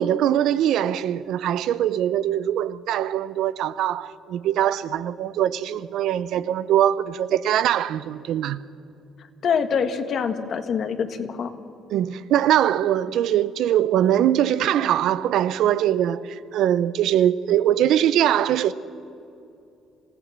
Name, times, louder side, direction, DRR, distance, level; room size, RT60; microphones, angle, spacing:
voice 1, 0.0-8.6 11.9-18.7, right 11 dB, 70° right, 0.7 m, -22 dB
voice 2, 9.4-11.5, left 6 dB, 55° left, 1.7 m, -25 dB
26.0 x 16.0 x 7.4 m
cardioid pair, 90°, 0 cm